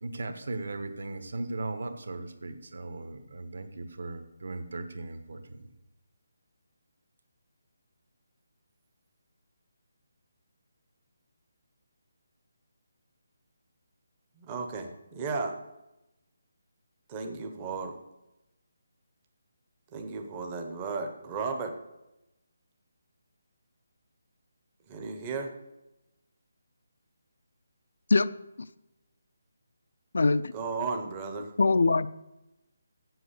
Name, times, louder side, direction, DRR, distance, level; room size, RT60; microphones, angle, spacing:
voice 1, 0.0-5.7, right 2 dB, 60° right, 8 dB, 1.3 m, -37 dB
voice 2, 14.4-15.6 17.1-18.0 19.9-21.7 24.9-25.5 30.5-31.5, right 4 dB, 15° right, 4 dB, 0.7 m, -34 dB
voice 3, 30.1-30.5 31.6-32.1, left 3 dB, 60° left, 13 dB, 0.4 m, -22 dB
7.9 x 7.8 x 8.1 m, 0.94 s
hypercardioid pair, 180°, 0 cm